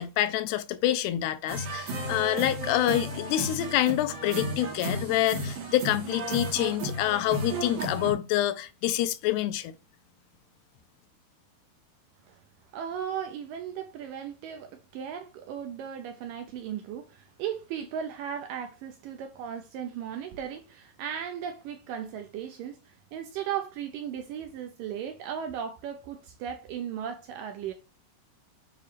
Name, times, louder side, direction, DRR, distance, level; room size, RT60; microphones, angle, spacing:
voice 1, 0.0-9.7, left 13 dB, 90° left, 2.7 m, -27 dB
sound 1, 1.5-8.1, right 2 dB, 60° right, 3.4 m, -34 dB
voice 2, 12.7-27.7, right 8 dB, 80° right, 2.0 m, -36 dB
9.2 x 3.1 x 4.8 m
omnidirectional pair, 4.6 m